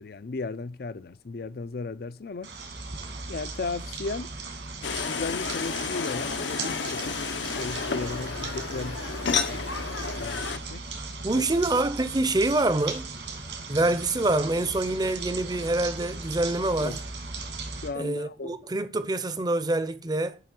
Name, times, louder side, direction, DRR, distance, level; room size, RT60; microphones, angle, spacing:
voice 1, 0.0-2.5 3.3-4.4 5.1-7.2 7.5-9.0 9.5-10.4 10.7-10.9 11.3-11.4 16.8-17.0 17.7-18.7, left 3 dB, 55° left, 0.5 m, -35 dB
sound 1, 2.4-17.9, right 3 dB, 75° right, 2.3 m, -37 dB
sound 2, 4.8-10.6, left 5 dB, 80° left, 0.9 m, -31 dB
voice 2, 11.2-13.1 13.7-17.0 18.0-20.4, right 2 dB, 20° right, 0.6 m, -26 dB
11.0 x 3.7 x 6.0 m
head